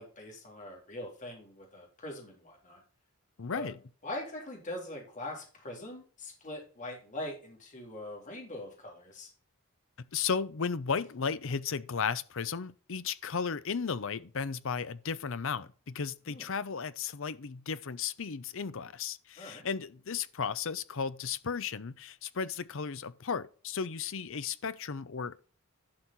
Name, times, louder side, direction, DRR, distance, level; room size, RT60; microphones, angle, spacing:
voice 1, 0.0-2.8 3.5-3.7 4.0-9.3 16.2-16.5 19.4-19.6, left 1 dB, 40° left, 3.7 m, -42 dB
voice 2, 3.4-3.8 10.0-25.4, left 6 dB, 65° left, 0.7 m, -35 dB
11.5 x 6.3 x 4.2 m
head